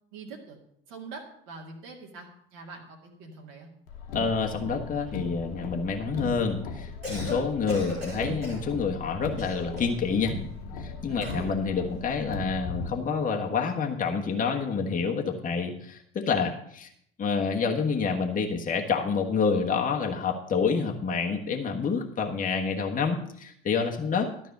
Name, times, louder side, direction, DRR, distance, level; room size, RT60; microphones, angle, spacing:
voice 1, 0.1-0.6 0.9-3.7 11.1-11.4, right 4 dB, 60° right, 0 dB, 2.1 m, -44 dB
Car, 3.9-12.9, left 3 dB, 70° left, 1.3 m, -37 dB
voice 2, 4.1-10.3 10.8-16.9 17.2-24.3, left 5 dB, 25° left, 2 dB, 1.3 m, -28 dB
Cough, 6.9-7.4 7.7-8.7 9.4-10.0 11.2-11.5, left 1 dB, 85° right, 4.0 m, -37 dB
12.5 x 5.5 x 6.6 m, 0.69 s
figure-of-eight pair, 60°, 30 cm